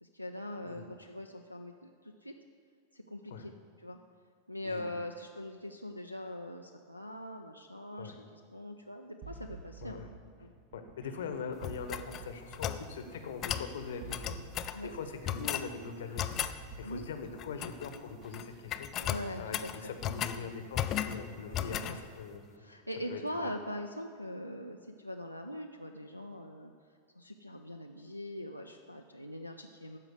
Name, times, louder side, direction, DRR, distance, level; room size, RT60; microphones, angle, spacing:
voice 1, 0.0-2.3 2.9-3.5 3.8-4.0 4.5-10.0 10.4-10.5 14.7-14.9 16.8-17.0 19.0-19.9 20.2-20.5 21.5-22.0 22.5-26.7 27.2-30.0, left 1 dB, 90° left, 2 dB, 0.4 m, -42 dB
sound 1, 9.2-18.7, right 4 dB, 35° right, 1.0 m, -51 dB
voice 2, 10.7-18.9 19.4-22.4 23.1-23.5, left 5 dB, 60° left, 7 dB, 1.0 m, -42 dB
sound 2, 11.6-12.8 13.4-13.7 14.1-14.8 15.2-15.7 16.2-16.6 17.4-18.0 18.2-18.4 18.7-20.4 20.7-21.2 21.5-22.0, left 10 dB, 35° left, 0.5 m, -35 dB
13.0 x 5.0 x 7.9 m, 2.1 s
figure-of-eight pair, 90°, 0 cm